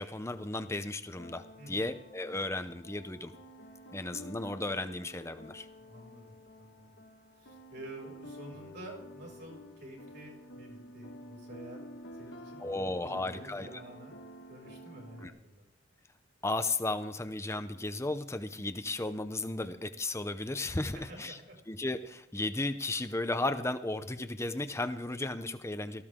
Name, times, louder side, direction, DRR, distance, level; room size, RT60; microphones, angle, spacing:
voice 1, 0.0-3.3 3.9-5.7 12.6-13.7 15.2-15.3 16.4-21.4 21.7-26.0, left 2 dB, 15° left, 9 dB, 0.7 m, -35 dB
sound 1, 1.2-15.3, equal, 65° left, 1.6 m, -50 dB
voice 2, 1.6-1.9 5.8-7.0 7.4-11.8 12.1-14.1 14.5-15.6 20.9-21.6, right 1 dB, 60° right, 0 dB, 6.2 m, -49 dB
18.5 x 14.5 x 3.7 m, 0.80 s
head